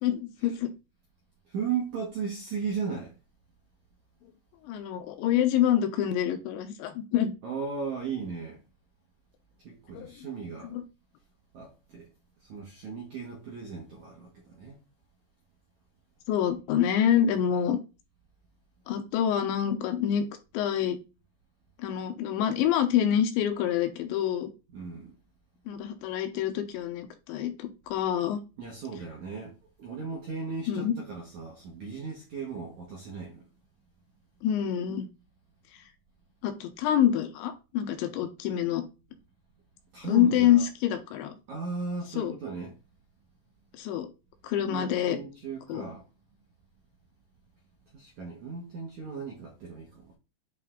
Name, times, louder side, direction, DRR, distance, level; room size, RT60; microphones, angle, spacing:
voice 1, 0.0-0.7 4.6-7.3 9.9-10.1 10.6-10.8 16.3-17.8 18.9-20.3 20.5-21.0 21.8-24.5 25.7-28.4 30.7-30.9 34.4-35.1 36.4-38.8 40.1-41.3 42.2-42.3 43.7-44.1 44.4-45.2 45.7-45.8, left 10 dB, 80° left, 3.1 m, -26 dB
voice 2, 1.5-3.2 7.4-8.6 9.6-10.7 11.5-12.1 12.4-14.8 24.7-25.1 28.6-33.5 39.9-40.7 41.5-42.8 44.6-46.1 47.9-50.2, right 5 dB, 70° right, 1.8 m, -36 dB
8.4 x 3.5 x 3.7 m
omnidirectional pair, 5.3 m